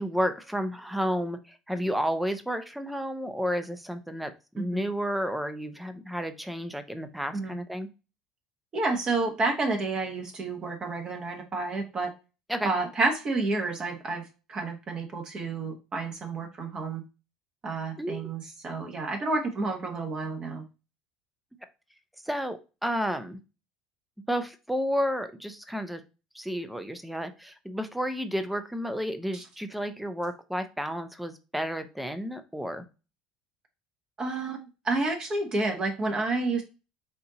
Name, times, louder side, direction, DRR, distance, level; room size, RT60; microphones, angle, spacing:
voice 1, 0.0-7.9 12.5-12.7 18.0-18.3 22.2-23.4 24.3-26.0 26.3-32.8, equal, 5° right, 9 dB, 0.7 m, -31 dB
voice 2, 8.7-12.1 12.6-14.2 14.5-17.0 17.6-20.6 29.3-29.4 34.2-36.6, right 3 dB, 35° right, 3 dB, 1.2 m, -30 dB
4.3 x 2.7 x 3.9 m, 0.30 s
hypercardioid pair, 80°, 2 cm